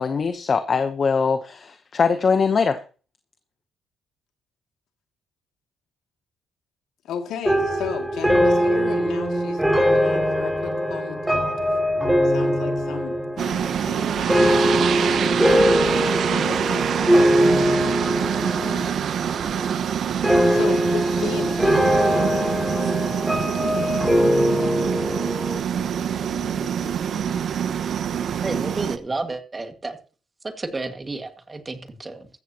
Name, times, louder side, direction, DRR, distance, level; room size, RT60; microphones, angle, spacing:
voice 1, 0.0-2.8, left 5 dB, 45° left, 0.9 m, -22 dB
voice 2, 7.0-11.6 12.2-15.5 15.8-18.9 19.6-19.7 20.5-27.4, left 7 dB, 80° left, 2.4 m, -36 dB
sound 1, 7.4-18.9 19.2-19.8 20.2-25.6, equal, 5° right, 5.7 m, -21 dB
sound 2, 13.4-29.0, right 8 dB, 65° right, 0.8 m, -25 dB
voice 3, 28.4-30.0 30.4-32.3, right 3 dB, 25° right, 1.9 m, -31 dB
14.5 x 14.0 x 2.9 m
cardioid pair, 90°, 0 cm